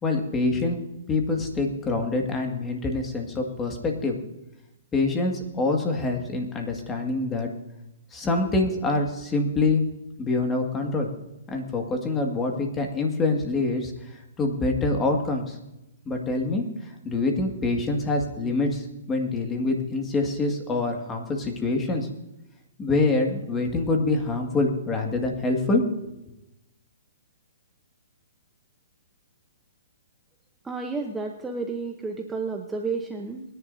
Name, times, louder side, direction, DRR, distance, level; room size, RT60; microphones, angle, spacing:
voice 1, 0.0-0.8 1.1-4.2 4.9-7.5 8.1-9.8 10.2-11.1 11.5-13.9 14.4-15.6 16.1-22.1 22.8-25.8, left 2 dB, 15° left, 2 dB, 2.0 m, -25 dB
voice 2, 30.6-33.5, right 4 dB, 10° right, 2 dB, 0.9 m, -31 dB
22.5 x 10.5 x 2.7 m, 0.92 s
hypercardioid pair, 145°, 0 cm